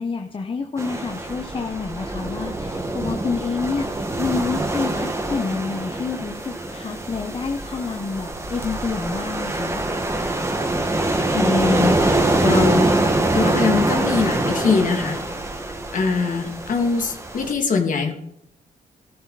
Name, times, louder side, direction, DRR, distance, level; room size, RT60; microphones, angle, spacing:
voice 1, 0.0-9.8, left 5 dB, 35° left, 4 dB, 1.2 m, -28 dB
sound 1, 0.8-17.5, right 2 dB, 15° right, 1.8 m, -24 dB
voice 2, 11.3-12.9 13.3-15.2 15.9-18.1, left 4 dB, 55° left, 3 dB, 2.5 m, -22 dB
18.0 x 13.0 x 4.2 m, 0.76 s
wide cardioid pair, 125°, 16 cm